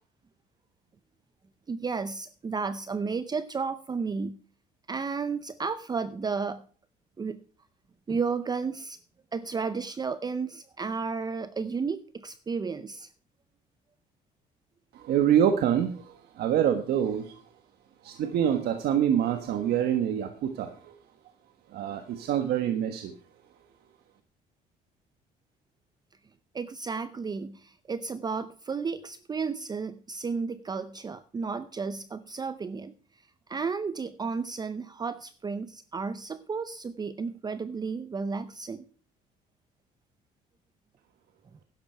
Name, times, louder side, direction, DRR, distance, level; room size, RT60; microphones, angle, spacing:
voice 1, 1.7-4.4 4.9-6.6 7.2-7.4 8.1-9.0 9.3-13.1 26.5-32.9 33.5-38.8, right 5 dB, 25° right, 13 dB, 0.6 m, -33 dB
voice 2, 14.9-17.4 18.0-21.0 21.7-23.1, right 9 dB, 70° right, 6 dB, 1.4 m, -26 dB
11.5 x 10.5 x 4.5 m, 0.43 s
cardioid pair, 110°, 17 cm